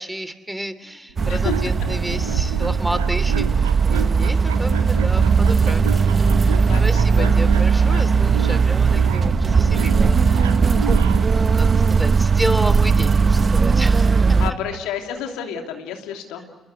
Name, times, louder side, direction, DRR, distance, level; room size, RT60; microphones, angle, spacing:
voice 1, 0.0-14.2 14.7-14.8, right 1 dB, 5° right, 12 dB, 3.0 m, -31 dB
sound 1, 1.1-11.3, right 8 dB, 90° right, 0.9 m, -32 dB
sound 2, 1.2-14.5, right 5 dB, 40° right, 1.1 m, -18 dB
sound 3, 1.7-3.3 4.7-4.8, left 2 dB, 25° left, 6.7 m, -42 dB
voice 2, 14.4-16.5, left 9 dB, 75° left, 3 dB, 3.0 m, -30 dB
29.0 x 22.0 x 8.2 m, 1.2 s
hypercardioid pair, 50°, 0 cm